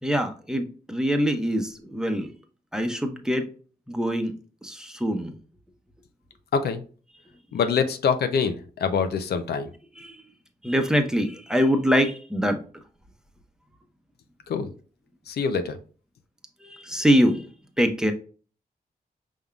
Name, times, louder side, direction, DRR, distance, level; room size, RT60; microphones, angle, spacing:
voice 1, 0.0-2.3 2.7-3.5 3.9-5.4 10.0-10.2 10.6-12.6 16.6-17.5 17.8-18.1, equal, 5° right, 5 dB, 0.8 m, -24 dB
voice 2, 7.5-9.7 14.5-14.7 15.3-15.8, left 6 dB, 90° left, 8 dB, 0.6 m, -25 dB
5.3 x 3.6 x 2.3 m, 0.38 s
cardioid pair, 75°, 16 cm